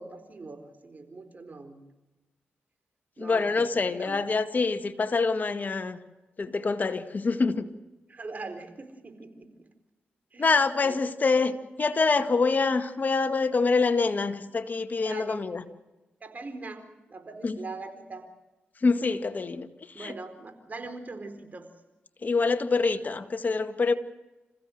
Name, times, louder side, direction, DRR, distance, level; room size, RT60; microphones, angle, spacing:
voice 1, 0.0-1.8 3.2-4.2 8.1-9.7 10.3-10.5 10.8-11.0 15.0-15.5 16.2-18.3 19.9-21.7, right 3 dB, 45° right, 4.3 m, -42 dB
voice 2, 3.2-6.0 6.4-7.7 10.4-15.6 17.4-17.6 18.8-19.7 20.0-20.1 22.2-24.0, left 4 dB, 45° left, 1.8 m, -25 dB
27.5 x 15.5 x 7.9 m
cardioid pair, 60°, 4 cm